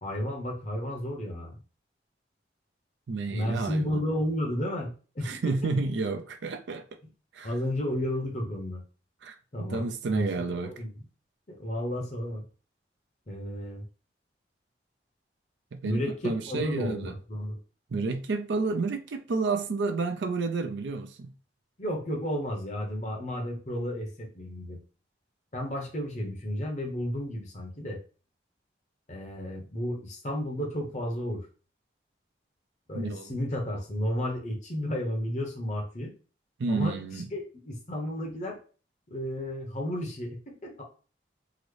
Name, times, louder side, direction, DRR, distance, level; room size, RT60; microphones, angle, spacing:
voice 1, 0.0-1.6 3.3-5.4 7.4-8.8 9.5-11.0 11.5-12.4 13.3-13.8 15.8-17.6 21.8-24.8 25.5-28.0 29.1-31.5 32.9-36.1 36.7-37.0 37.3-38.6 39.1-40.8, equal, 40° left, 0.8 m, -32 dB
voice 2, 3.1-4.0 5.2-6.8 7.3-7.5 9.2-9.4 9.7-10.7 15.7-16.0 16.2-17.1 17.9-21.3 32.9-33.3 36.6-37.2, right 3 dB, 80° right, 0.4 m, -30 dB
3.8 x 2.0 x 3.1 m
head